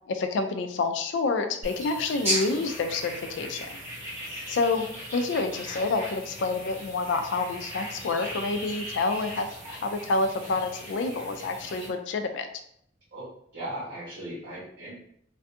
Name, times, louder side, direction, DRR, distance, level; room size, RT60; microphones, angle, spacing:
voice 1, 0.1-3.7 4.5-4.9 5.1-12.5, left 3 dB, 75° left, 7 dB, 0.3 m, -28 dB
sound 1, 1.6-11.9, equal, 10° right, 1.4 m, -37 dB
voice 2, 13.5-14.9, right 1 dB, 65° right, -10 dB, 1.0 m, -37 dB
2.6 x 2.2 x 2.5 m, 0.68 s
head